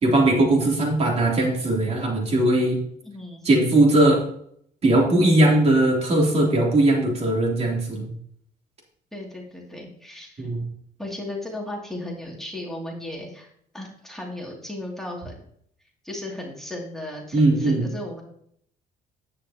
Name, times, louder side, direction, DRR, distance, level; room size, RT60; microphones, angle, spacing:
voice 1, 0.0-2.8 3.4-4.2 4.8-8.1 10.4-10.6 17.3-17.9, right 1 dB, 40° right, -1 dB, 3.2 m, -19 dB
voice 2, 3.0-3.4 9.1-10.5 11.0-15.4 16.0-18.2, left 1 dB, ahead, -3 dB, 2.5 m, -35 dB
10.5 x 9.0 x 2.9 m, 0.66 s
cardioid pair, 110°, 17 cm